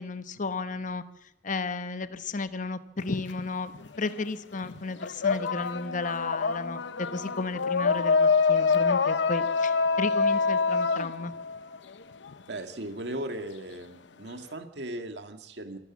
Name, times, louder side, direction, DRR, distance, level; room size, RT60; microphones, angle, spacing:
voice 1, 0.0-11.3, left 3 dB, 45° left, 12 dB, 0.9 m, -34 dB
sound 1, 3.0-4.2 4.5-12.3, left 4 dB, 85° left, 0.7 m, -26 dB
voice 2, 12.5-15.8, right 1 dB, 70° right, 7 dB, 1.9 m, -37 dB
26.0 x 13.5 x 7.3 m, 0.81 s
head